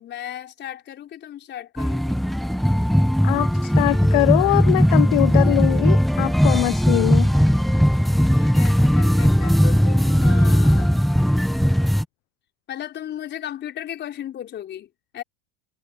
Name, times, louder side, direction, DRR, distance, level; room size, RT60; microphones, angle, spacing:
voice 1, 0.0-2.2 8.3-11.0 12.7-15.2, left 11 dB, 35° left, 4.9 m, -36 dB
sound 1, 1.8-12.0, equal, ahead, 0.9 m, -18 dB
voice 2, 3.2-7.3, left 27 dB, 55° left, 0.7 m, -22 dB
hypercardioid pair, 110°, 30 cm